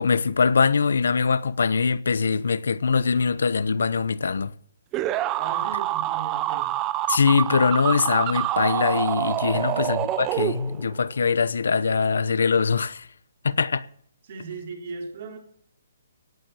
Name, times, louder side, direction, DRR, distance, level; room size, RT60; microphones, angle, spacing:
voice 1, 0.0-4.5 7.1-13.1 13.4-13.8, left 5 dB, 85° left, 0.9 m, -22 dB
sound 1, 4.9-11.0, right 14 dB, 20° right, 0.5 m, -27 dB
voice 2, 5.4-6.8 9.5-9.9 13.5-13.6 14.2-15.4, right 4 dB, 45° right, 4.1 m, -38 dB
17.5 x 7.9 x 7.0 m
hypercardioid pair, 165°, 0 cm